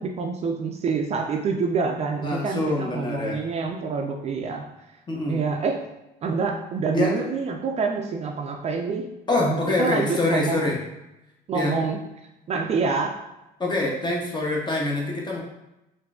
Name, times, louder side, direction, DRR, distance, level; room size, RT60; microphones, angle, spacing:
voice 1, 0.0-4.7 5.3-5.8 6.2-9.1 9.4-10.7 11.5-12.0 12.5-13.2, right 4 dB, 40° right, 2 dB, 0.4 m, -27 dB
voice 2, 2.2-3.4 5.1-5.4 6.9-7.1 9.3-10.8 11.5-11.7 13.6-15.4, left 2 dB, 25° left, -1 dB, 0.7 m, -25 dB
3.6 x 2.6 x 2.3 m, 0.92 s
cardioid pair, 110°, 17 cm